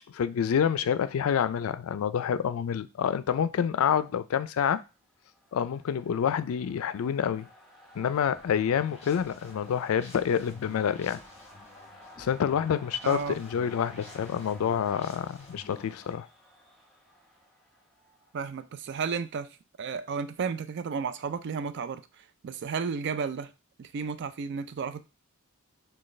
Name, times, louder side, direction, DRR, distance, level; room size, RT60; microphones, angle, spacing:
voice 1, 0.1-4.8 5.5-7.5 8.0-11.2 12.2-16.3, left 8 dB, 75° left, 0.3 m, -27 dB
sound 1, 4.9-18.7, equal, ahead, 1.1 m, -54 dB
sound 2, 8.1-16.1, left 3 dB, 30° left, 1.0 m, -51 dB
voice 2, 13.0-13.4 18.3-23.5 23.8-25.0, right 5 dB, 55° right, 0.4 m, -33 dB
6.2 x 2.3 x 3.2 m
head